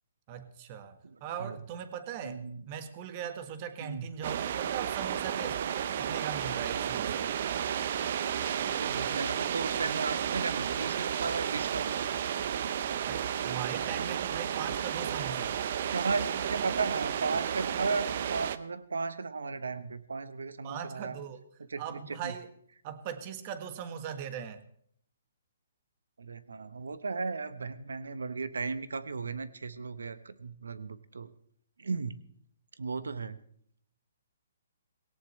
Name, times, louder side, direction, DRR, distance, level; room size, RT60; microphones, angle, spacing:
voice 1, 0.3-7.3 13.0-15.7 20.6-21.4 21.8-22.5 22.8-24.6, right 8 dB, 35° right, 10 dB, 1.5 m, -40 dB
voice 2, 1.0-1.6 2.2-2.6 3.8-4.1 8.5-12.1 15.9-21.2 21.7-22.3 26.2-31.3 31.8-32.1 32.8-33.4, right 4 dB, 90° right, 14 dB, 1.1 m, -35 dB
sound 1, 4.2-18.6, right 9 dB, 50° right, 0.7 m, -32 dB
18.5 x 17.5 x 3.2 m, 0.64 s
hypercardioid pair, 150°, 0 cm